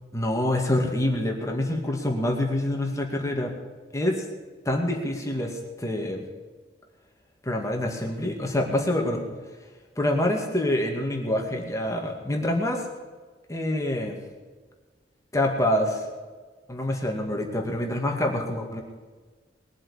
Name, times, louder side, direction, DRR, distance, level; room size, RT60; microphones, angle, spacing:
voice 1, 0.1-3.5 3.9-4.2 4.7-6.3 7.4-9.2 10.0-12.9 13.5-14.2 15.3-16.1 16.7-18.8, left 1 dB, 20° left, 1 dB, 2.2 m, -26 dB
21.0 x 7.6 x 7.3 m, 1.4 s
head